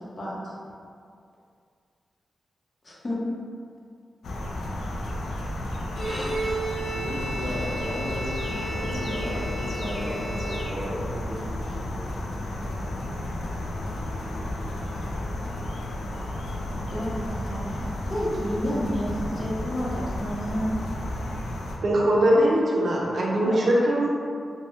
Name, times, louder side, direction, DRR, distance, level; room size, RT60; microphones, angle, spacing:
voice 1, 0.2-0.5 2.8-3.2 16.9-20.8 23.4-23.6, equal, 45° left, -6 dB, 0.7 m, -30 dB
sound 1, 4.2-21.8, left 1 dB, 90° left, 0.3 m, -32 dB
Bowed string instrument, 5.9-11.1, right 2 dB, 70° left, 0.9 m, -34 dB
voice 2, 6.9-12.1, equal, 5° right, -9 dB, 1.0 m, -35 dB
voice 3, 21.8-24.1, equal, 60° right, -4 dB, 0.5 m, -21 dB
2.6 x 2.0 x 3.4 m, 2.3 s
wide cardioid pair, 100°, 0 cm